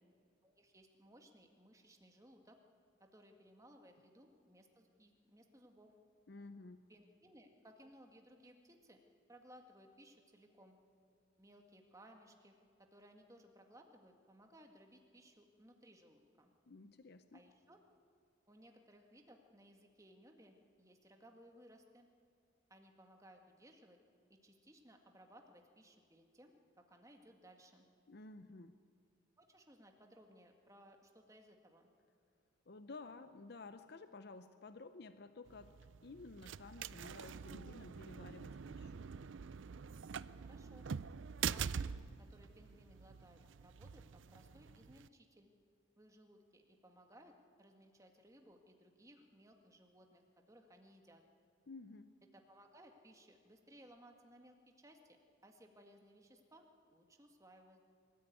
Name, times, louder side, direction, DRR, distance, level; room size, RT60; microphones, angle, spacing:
voice 1, 0.4-2.6 3.0-5.9 6.9-9.0 9.3-10.8 11.4-16.5 17.3-17.8 18.5-22.1 22.7-24.0 24.3-27.9 29.4-31.9 40.4-40.9 41.5-41.9 42.2-45.5 46.0-47.3 47.6-51.2 52.3-55.2 55.4-57.8, equal, 15° right, 3 dB, 1.8 m, -62 dB
voice 2, 6.3-6.8 16.7-17.4 28.1-28.7 32.7-35.7 36.0-39.1 51.7-52.2, left 3 dB, 55° left, 11 dB, 0.7 m, -53 dB
sound 1, 35.5-45.1, right 7 dB, 70° right, 0.5 m, -45 dB
24.0 x 14.0 x 9.3 m, 2.2 s
head